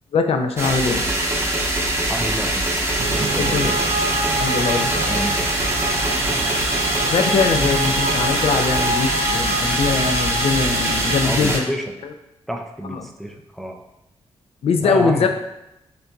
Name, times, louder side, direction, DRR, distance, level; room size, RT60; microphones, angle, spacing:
voice 1, 0.1-1.0 3.4-3.7 4.4-5.1 7.1-11.7 14.6-15.3, left 5 dB, 65° left, 5 dB, 0.4 m, -21 dB
sound 1, 0.6-11.6, right 1 dB, 25° right, 0.8 m, -23 dB
voice 2, 2.1-2.7 3.1-3.8 5.0-5.4 11.2-12.0 12.5-13.8 14.7-15.3, equal, ahead, 2 dB, 0.4 m, -29 dB
sound 2, 3.0-11.2, right 2 dB, 85° right, 0.5 m, -26 dB
6.7 x 2.5 x 2.3 m, 0.89 s
wide cardioid pair, 120°, 11 cm